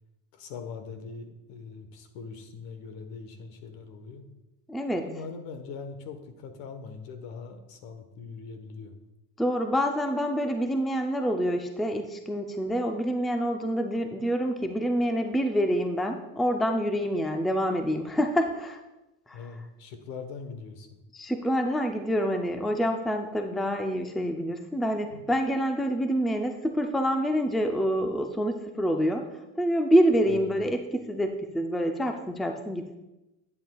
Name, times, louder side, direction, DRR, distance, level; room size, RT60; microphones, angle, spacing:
voice 1, 0.3-4.2 5.0-8.9 19.3-21.0 25.1-25.2 30.3-30.6, left 5 dB, 70° left, 7 dB, 1.2 m, -42 dB
voice 2, 4.7-5.1 9.4-18.8 19.3-19.4 21.1-29.3 29.6-33.0, equal, ahead, 5 dB, 0.4 m, -27 dB
10.5 x 8.5 x 2.3 m, 0.99 s
cardioid pair, 125°, 36 cm